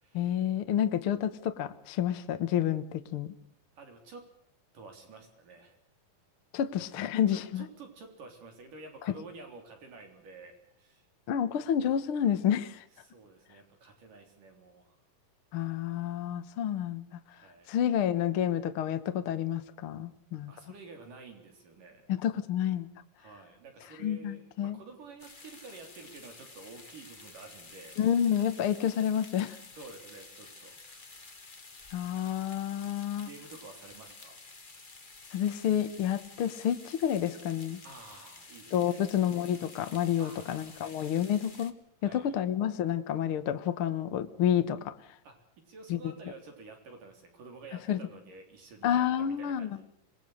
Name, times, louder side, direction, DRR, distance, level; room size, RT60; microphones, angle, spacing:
voice 1, 0.1-3.3 6.5-7.6 9.1-9.2 11.3-12.8 15.5-17.0 17.7-20.5 22.1-22.9 24.0-24.8 28.0-29.6 31.9-33.3 35.3-37.8 38.7-41.7 42.0-45.0 45.9-46.0 47.9-48.0 48.8-49.8, left 9 dB, 60° left, 10 dB, 1.4 m, -29 dB
voice 2, 3.8-4.2 4.7-5.8 7.3-11.1 13.0-15.0 17.3-17.7 20.5-22.1 23.2-28.0 29.8-30.8 33.2-34.4 37.8-39.0 40.2-41.0 42.0-42.3 45.2-45.4 45.7-49.8, right 3 dB, 65° right, 4 dB, 5.3 m, -50 dB
sound 1, 25.2-41.7, left 3 dB, 40° left, 0.7 m, -51 dB
26.5 x 20.5 x 6.5 m, 0.68 s
omnidirectional pair, 4.1 m